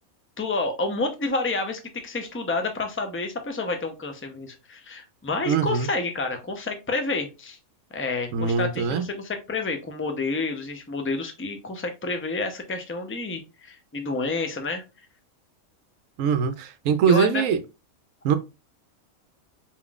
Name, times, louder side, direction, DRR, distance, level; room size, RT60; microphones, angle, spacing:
voice 1, 0.4-7.6 7.9-14.8 17.1-17.4, left 3 dB, 15° left, 0.4 m, -29 dB
voice 2, 5.5-5.9 8.3-9.1 16.2-17.6 18.2-18.4, right 6 dB, 70° right, 0.9 m, -22 dB
4.4 x 3.8 x 2.4 m
omnidirectional pair, 1.5 m